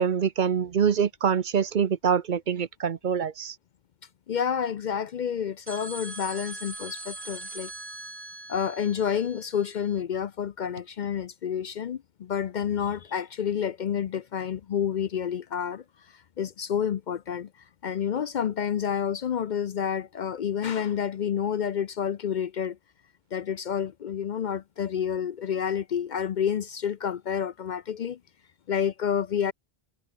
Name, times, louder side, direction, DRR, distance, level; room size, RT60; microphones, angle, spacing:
voice 1, 0.0-3.5, right 7 dB, 55° right, 0.8 m, -25 dB
voice 2, 4.3-7.7 8.5-15.8 16.1-17.5 17.8-22.8 23.3-28.2 28.7-29.5, left 8 dB, 55° left, 0.6 m, -29 dB
sound 1, 5.7-10.0, right 2 dB, 80° right, 4.4 m, -41 dB
omnidirectional pair, 1.0 m